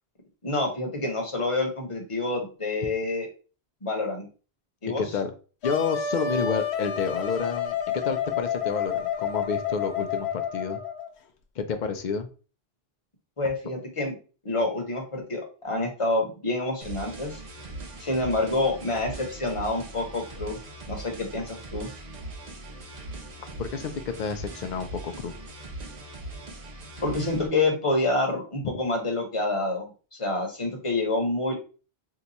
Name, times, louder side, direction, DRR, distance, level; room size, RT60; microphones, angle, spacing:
voice 1, 0.4-3.3 3.8-4.3 4.8-5.0 13.4-14.1 14.4-17.4 18.0-20.6 20.9-21.9 27.0-29.9 30.2-31.5, left 2 dB, 30° left, 1 dB, 0.9 m, -27 dB
voice 2, 5.0-5.3 5.6-10.8 11.6-12.3 23.6-23.9 24.2-25.4 28.6-28.7, left 5 dB, 60° left, 8 dB, 0.5 m, -30 dB
Wind instrument woodwind instrument, 5.6-11.1, left 7 dB, 80° left, 0.9 m, -29 dB
sound 1, 16.8-27.5, right 2 dB, 45° right, 0.7 m, -40 dB
2.8 x 2.3 x 4.0 m, 0.36 s
omnidirectional pair, 1.1 m